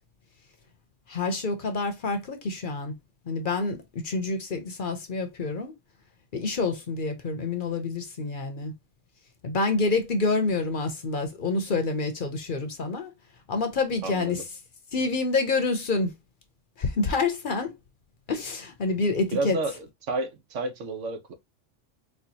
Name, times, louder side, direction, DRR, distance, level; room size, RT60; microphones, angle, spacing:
voice 1, 1.1-3.0 3.3-5.8 6.3-8.7 9.4-13.1 13.5-14.4 14.9-16.1 16.8-17.7 18.3-19.6, left 3 dB, 50° left, 0.8 m, -27 dB
voice 2, 14.0-14.4 19.3-21.3, right 2 dB, 80° right, 1.2 m, -31 dB
4.3 x 2.3 x 2.7 m
omnidirectional pair, 1.2 m